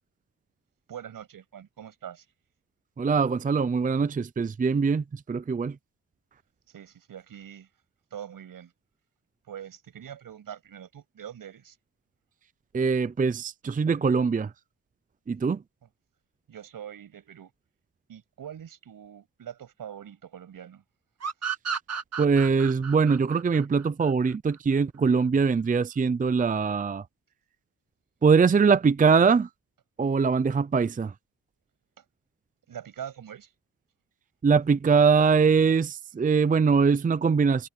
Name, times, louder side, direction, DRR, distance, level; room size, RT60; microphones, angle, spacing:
voice 1, 0.9-2.3 6.7-7.7 8.1-8.7 9.5-11.8 16.5-17.5 18.1-20.8 32.0-32.1 32.7-33.5, right 9 dB, 75° right, 7.2 m, -43 dB
voice 2, 3.0-5.8 12.7-14.5 15.3-15.6 22.2-27.0 28.2-29.5 30.0-31.1 34.4-37.7, right 5 dB, 25° right, 0.6 m, -22 dB
sound 1, 21.2-24.6, right 6 dB, 45° right, 1.9 m, -34 dB
cardioid pair, 105°, 34 cm